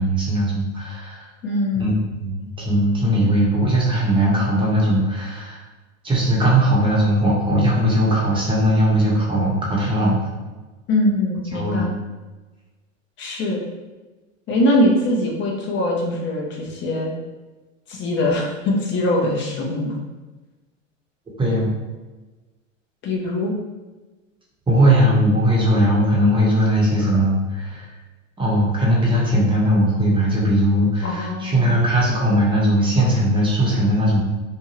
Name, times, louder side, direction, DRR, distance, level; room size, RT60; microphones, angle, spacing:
voice 1, 0.0-1.3 1.7-1.9 2.2-5.6 6.0-10.3 11.5-11.9 21.4-21.7 24.7-27.9 28.4-34.2, right 1 dB, 15° right, -4 dB, 0.9 m, -19 dB
voice 2, 1.4-2.0 3.2-3.3 10.9-11.9 13.2-13.6 14.5-17.1 17.9-20.0 23.0-23.5 31.0-31.8, left 1 dB, 30° left, -1 dB, 0.8 m, -22 dB
2.7 x 2.2 x 3.0 m, 1.2 s
hypercardioid pair, 95°, 39 cm